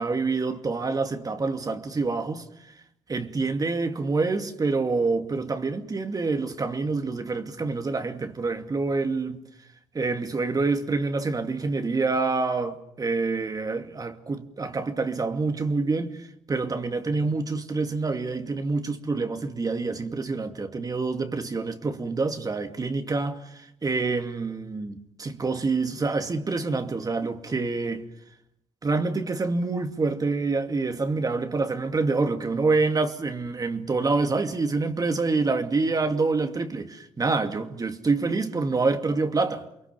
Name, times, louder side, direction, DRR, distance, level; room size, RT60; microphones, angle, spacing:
voice 1, 0.0-2.5 3.1-9.4 9.9-28.0 28.8-39.7, right 3 dB, 35° right, 2.5 m, -27 dB
29.0 x 22.5 x 7.1 m
supercardioid pair, 60°, 11 cm